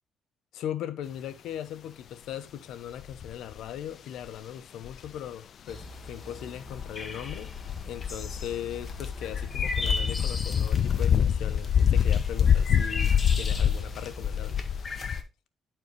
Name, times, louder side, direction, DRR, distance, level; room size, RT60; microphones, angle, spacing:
voice 1, 0.5-7.5 7.8-14.6, left 10 dB, 85° left, 0.9 m, -39 dB
sound 1, 3.0-3.7 4.8-5.1 5.8-6.1 6.7-15.2, left 8 dB, 60° left, 0.4 m, -26 dB
sound 2, 5.7-15.2, left 2 dB, 35° left, 1.6 m, -38 dB
11.0 x 4.5 x 3.2 m
cardioid pair, 90°, 0 cm